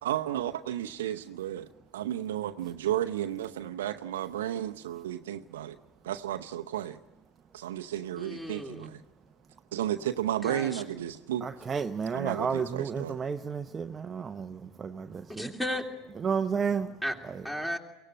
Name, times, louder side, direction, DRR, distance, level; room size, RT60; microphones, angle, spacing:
voice 1, 0.0-5.8 6.0-7.0 7.5-9.0 9.7-11.5 12.1-13.2, right 11 dB, 75° right, 0.7 m, -33 dB
voice 2, 8.2-9.0 10.4-10.8 15.3-15.9 17.0-17.1 17.4-17.8, equal, 10° left, 2.9 m, -34 dB
voice 3, 11.4-15.5 16.2-16.9 17.2-17.4, right 6 dB, 30° right, 0.8 m, -32 dB
23.0 x 17.5 x 8.9 m
figure-of-eight pair, 70°, 0 cm